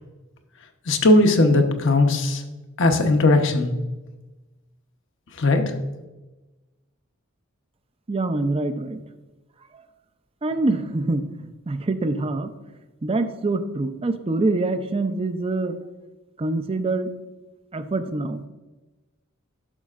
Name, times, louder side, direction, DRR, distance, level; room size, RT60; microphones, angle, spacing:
voice 1, 0.9-2.4 2.8-3.7 5.4-5.7, left 2 dB, 60° left, 5 dB, 0.9 m, -18 dB
voice 2, 8.1-9.0 10.4-11.3 11.7-12.5 13.0-15.8 16.4-17.1 17.7-18.4, right 2 dB, 25° right, 10 dB, 0.5 m, -25 dB
11.0 x 6.3 x 2.5 m, 1.1 s
head